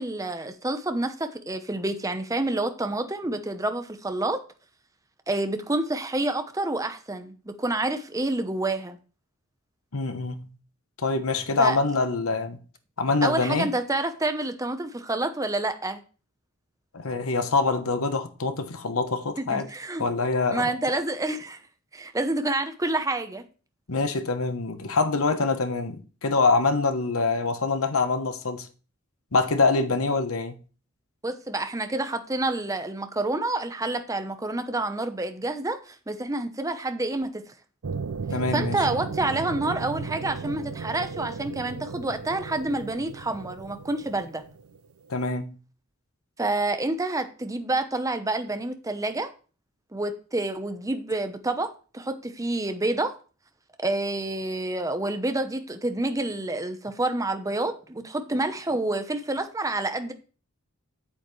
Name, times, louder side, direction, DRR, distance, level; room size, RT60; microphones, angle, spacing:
voice 1, 0.0-4.4 5.3-9.0 11.6-11.8 13.2-16.0 19.4-20.0 20.5-21.6 21.9-23.4 31.2-37.5 38.5-44.4 46.4-49.3 49.9-53.1 53.8-60.1, right 2 dB, 15° right, 0.9 m, -28 dB
voice 2, 9.9-10.5 11.0-12.6 13.0-13.7 16.9-19.7 20.0-20.7 23.9-28.7 29.3-30.6 38.3-38.8 45.1-45.6, left 3 dB, 80° left, 1.0 m, -25 dB
sound 1, 37.8-44.8 45.1-45.2, right 4 dB, 85° right, 0.5 m, -35 dB
8.5 x 7.9 x 3.2 m
head